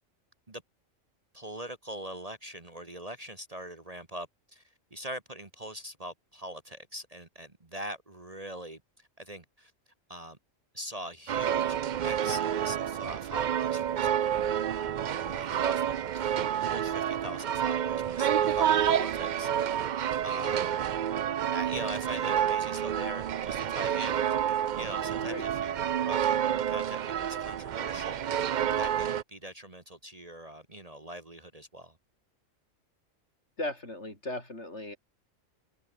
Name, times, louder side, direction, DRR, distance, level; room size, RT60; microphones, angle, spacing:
voice 1, 1.3-4.6 4.9-9.7 10.1-10.4 10.7-11.8 12.0-19.8 20.2-20.8 21.5-24.4 24.7-25.8 26.0-28.5 28.8-32.0, equal, 30° right, 1.9 m, -42 dB
sound 1, 11.3-29.2, right 9 dB, 55° right, 0.5 m, -29 dB
voice 2, 33.6-35.0, left 1 dB, 60° left, 6.6 m, -37 dB
omnidirectional pair, 1.4 m